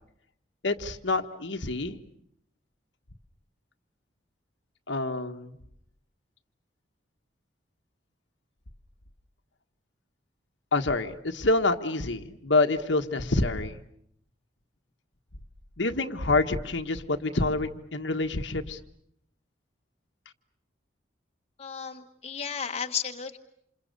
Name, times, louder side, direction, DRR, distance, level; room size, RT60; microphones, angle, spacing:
voice 1, 0.6-2.0 4.9-5.6 10.7-13.8 15.8-18.8, left 2 dB, 70° left, 6 dB, 1.5 m, -27 dB
voice 2, 21.6-23.4, left 7 dB, 35° left, 4 dB, 1.3 m, -33 dB
28.0 x 28.0 x 6.8 m, 0.72 s
head